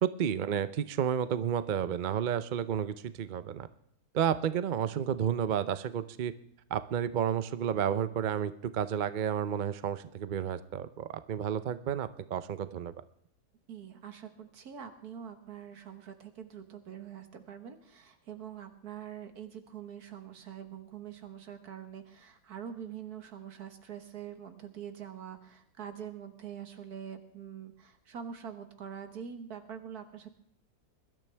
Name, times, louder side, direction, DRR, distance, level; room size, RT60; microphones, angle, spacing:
voice 1, 0.0-3.7 4.1-6.3 6.7-12.9, right 9 dB, 60° right, 13 dB, 0.5 m, -31 dB
voice 2, 13.7-30.3, right 8 dB, 75° right, 7 dB, 1.9 m, -44 dB
21.5 x 12.5 x 3.4 m, 0.69 s
omnidirectional pair, 1.7 m